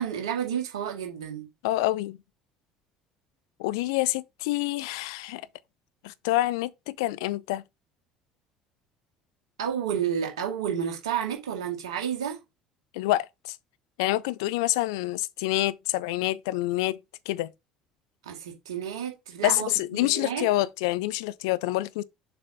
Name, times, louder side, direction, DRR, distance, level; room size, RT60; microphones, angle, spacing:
voice 1, 0.0-1.5 9.6-12.4 18.2-20.5, right 8 dB, 75° right, 1.9 m, -31 dB
voice 2, 1.6-2.2 3.6-5.4 6.0-7.6 12.9-13.6 14.0-17.0 17.3-17.5 19.4-22.0, left 17 dB, 65° left, 0.4 m, -27 dB
6.9 x 5.1 x 2.7 m
figure-of-eight pair, 60°, 3 cm